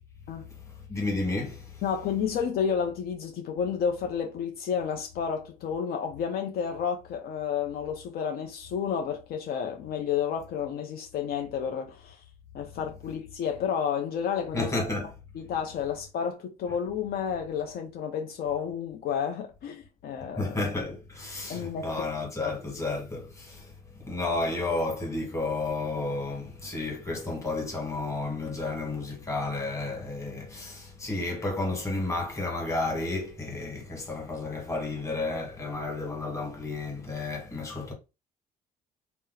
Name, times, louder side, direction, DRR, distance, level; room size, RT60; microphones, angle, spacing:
voice 1, 0.9-1.8 14.5-15.1 20.4-37.9, left 2 dB, 15° left, 1.5 m, -32 dB
voice 2, 1.8-12.2 12.5-14.7 15.3-20.6 21.5-22.1 22.4-22.6, left 7 dB, 65° left, 0.6 m, -31 dB
2.8 x 2.0 x 3.8 m
cardioid pair, 110°, 17 cm